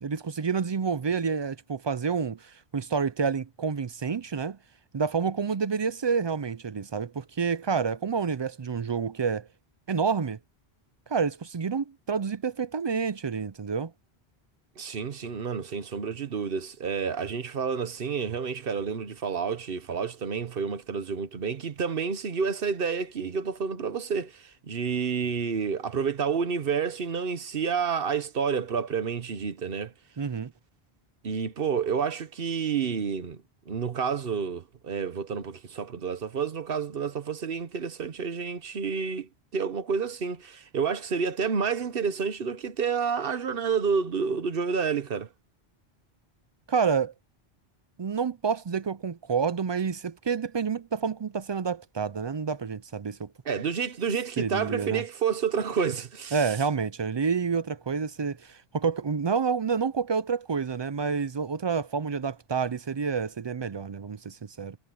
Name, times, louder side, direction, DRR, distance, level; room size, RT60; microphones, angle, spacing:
voice 1, 0.0-4.6 4.9-9.5 9.9-10.4 11.1-13.9 30.2-30.5 46.7-47.1 48.0-53.3 54.4-55.0 56.3-64.8, right 5 dB, 40° right, 0.4 m, -28 dB
voice 2, 14.8-29.9 31.2-45.3 53.4-56.5, right 6 dB, 60° right, 1.2 m, -29 dB
omnidirectional pair, 1.1 m